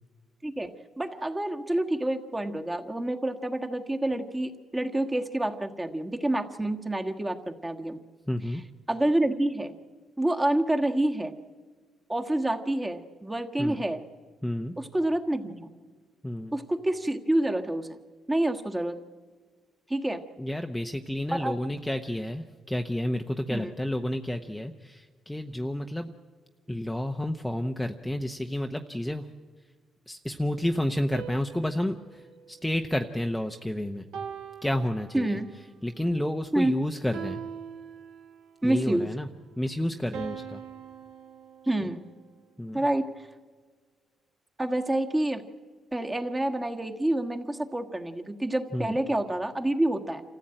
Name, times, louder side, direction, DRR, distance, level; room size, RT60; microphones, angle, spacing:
voice 1, 1.0-8.0 8.5-8.6 8.9-9.7 10.2-11.3 12.1-14.0 14.8-15.7 16.5-18.0 18.3-19.0 19.9-20.2 21.3-21.5 23.5-23.7 35.1-35.5 36.5-36.7 38.6-39.1 41.7-42.1 42.7-43.1 44.6-45.4 45.9-50.2, right 1 dB, 15° right, 5 dB, 1.5 m, -28 dB
voice 2, 8.3-8.6 13.6-13.8 14.4-14.7 16.2-16.5 20.4-26.1 26.7-29.3 30.1-32.2 32.5-34.0 34.6-35.4 35.8-37.4 38.6-39.3 39.6-40.6 42.6-42.8 48.7-49.0, left 1 dB, 5° left, 5 dB, 0.8 m, -30 dB
sound 1, 31.1-33.5 34.1-35.6 37.1-38.6 40.1-42.4, right 7 dB, 85° right, 2.1 m, -42 dB
27.0 x 14.5 x 8.9 m, 1.5 s
cardioid pair, 90°, 0 cm